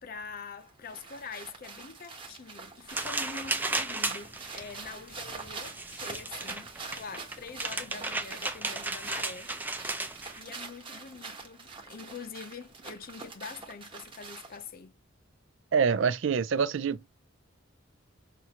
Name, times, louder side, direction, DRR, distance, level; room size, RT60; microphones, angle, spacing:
voice 1, 0.0-9.5 10.3-14.9, left 5 dB, 45° left, 0.5 m, -45 dB
sound 1, 0.6-14.7, right 4 dB, 25° right, 1.0 m, -45 dB
sound 2, 2.9-10.4, right 2 dB, 10° right, 0.4 m, -35 dB
voice 2, 15.7-17.1, right 6 dB, 65° right, 0.4 m, -26 dB
5.6 x 2.5 x 2.9 m
head